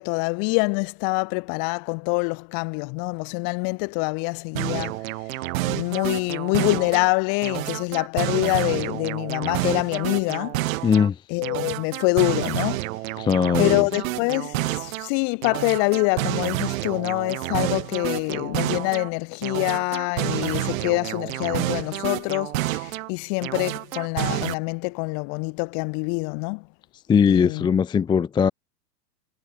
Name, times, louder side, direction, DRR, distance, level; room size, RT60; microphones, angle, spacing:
voice 1, 0.0-5.0 5.7-10.6 11.3-12.8 13.6-26.6 27.3-27.7, left 40 dB or more, 40° left, 3.8 m, -25 dB
sound 1, 4.5-7.1 7.4-11.1 11.4-15.1 15.4-19.1 19.4-23.1 23.4-24.5, right 18 dB, 55° right, 2.6 m, -29 dB
voice 2, 10.8-11.2 13.2-13.9 27.1-28.5, left 7 dB, 10° left, 0.6 m, -20 dB
hypercardioid pair, 105°, 49 cm